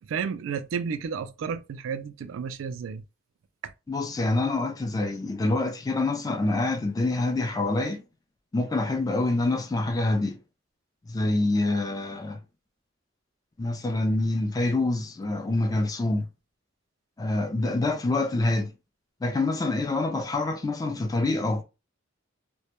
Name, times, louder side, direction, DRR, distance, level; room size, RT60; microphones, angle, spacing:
voice 1, 0.1-3.0 3.6-3.7, right 6 dB, 85° right, 0.3 m, -32 dB
voice 2, 3.9-8.0 8.5-10.4 11.1-12.4 13.6-16.3 17.2-18.7 19.2-21.6, left 2 dB, 20° left, 0.3 m, -26 dB
2.1 x 2.1 x 2.9 m
head